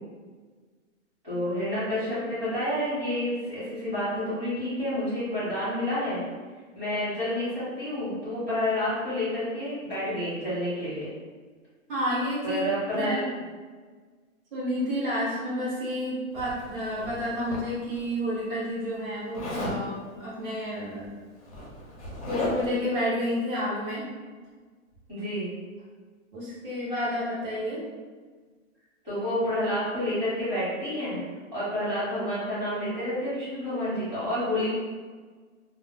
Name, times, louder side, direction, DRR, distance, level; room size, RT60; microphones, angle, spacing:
voice 1, 1.2-6.2 6.7-11.1 12.4-13.2 25.1-25.5 29.0-31.2 31.5-34.7, left 1 dB, 15° right, -14 dB, 1.3 m, -29 dB
voice 2, 11.9-13.2 14.5-21.1 22.3-24.0 26.3-27.8, equal, 40° right, -8 dB, 1.0 m, -30 dB
Zipper (clothing), 16.4-18.0 19.3-19.8 21.0-21.1 21.4-22.8, left 1 dB, 25° left, 0.5 m, -35 dB
2.4 x 2.1 x 3.6 m, 1.5 s
hypercardioid pair, 170°, 41 cm